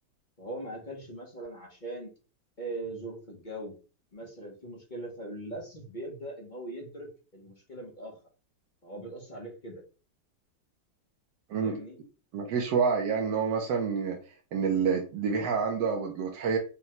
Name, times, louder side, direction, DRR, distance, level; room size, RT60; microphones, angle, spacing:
voice 1, 0.4-2.1 2.6-3.7 4.1-8.2 8.8-9.8 11.5-12.0, right 1 dB, 35° left, -2 dB, 0.7 m, -40 dB
voice 2, 12.3-14.2 14.5-16.6, right 6 dB, 75° right, 1 dB, 1.3 m, -28 dB
5.3 x 2.3 x 2.9 m, 0.35 s
omnidirectional pair, 1.9 m